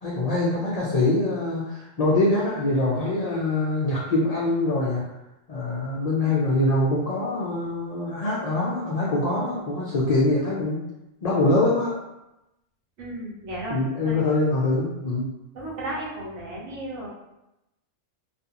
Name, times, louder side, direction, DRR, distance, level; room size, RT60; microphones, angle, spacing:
voice 1, 0.0-5.0 5.5-10.8 11.2-12.0 13.7-15.3, left 2 dB, 65° left, -5 dB, 0.3 m, -24 dB
voice 2, 13.0-13.8 14.0-14.2 15.5-17.1, right 1 dB, 75° right, -5 dB, 1.1 m, -34 dB
2.5 x 2.3 x 2.7 m, 0.91 s
omnidirectional pair, 1.2 m